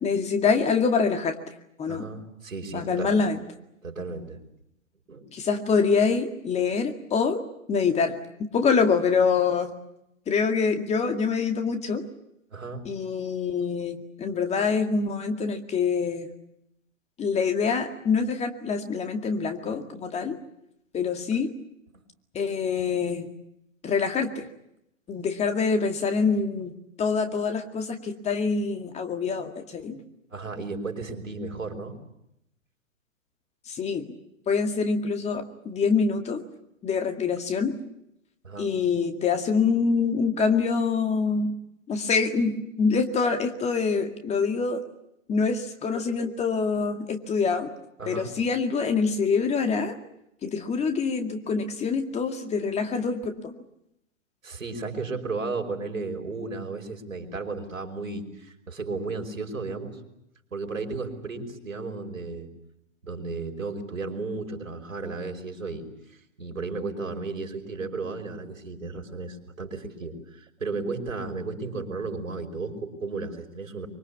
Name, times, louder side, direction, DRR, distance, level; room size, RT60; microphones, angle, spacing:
voice 1, 0.0-1.3 1.8-2.1 2.7-3.4 5.3-7.4 7.7-8.2 8.5-9.7 10.3-12.0 12.9-16.3 17.2-20.4 20.9-21.5 22.3-23.3 23.8-24.5 25.1-30.0 33.7-34.1 34.5-36.4 36.8-37.8 38.6-41.5 41.9-44.8 45.3-47.7 48.1-50.0 50.4-53.5, left 5 dB, 15° left, 6 dB, 2.1 m, -25 dB
voice 2, 1.9-3.2 3.8-4.4 5.1-5.3 12.5-12.8 30.3-32.0 38.4-38.7 48.0-48.3 54.4-60.0 60.5-62.5 63.0-65.9 66.4-73.9, right 3 dB, 85° right, 4 dB, 5.3 m, -34 dB
24.5 x 24.0 x 8.4 m, 0.82 s
hypercardioid pair, 120°, 39 cm